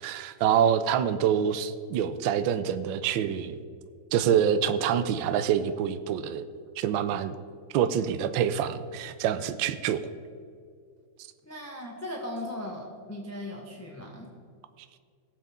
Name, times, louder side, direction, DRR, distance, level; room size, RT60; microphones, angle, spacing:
voice 1, 0.0-3.6 4.1-6.4 6.8-7.3 7.7-10.0, right 9 dB, 75° right, 11 dB, 1.3 m, -26 dB
voice 2, 11.4-14.3, left 1 dB, 10° left, -2 dB, 1.0 m, -38 dB
17.5 x 7.6 x 3.6 m, 2.2 s
omnidirectional pair, 2.2 m